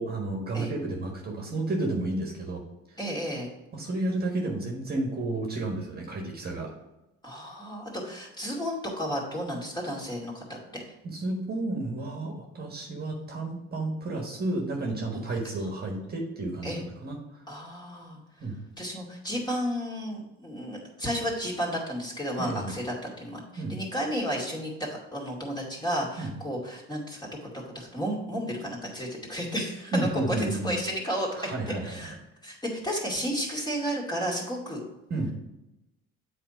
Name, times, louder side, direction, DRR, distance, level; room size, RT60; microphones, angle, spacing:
voice 1, 0.0-2.6 3.7-6.7 11.0-17.2 18.4-18.6 22.4-22.7 23.6-23.8 26.2-26.3 29.9-30.8 31.3-32.2 35.1-35.3, right 2 dB, 35° right, 1 dB, 1.5 m, -31 dB
voice 2, 3.0-3.5 7.2-10.4 10.7-10.8 15.1-15.2 16.6-16.8 17.5-18.2 18.8-22.9 23.2-24.7 25.1-27.2 27.7-31.5 31.8-32.1 32.4-32.6 32.8-34.8, equal, 15° left, -2 dB, 2.3 m, -32 dB
7.8 x 4.4 x 5.0 m, 0.96 s
cardioid pair, 115°, 29 cm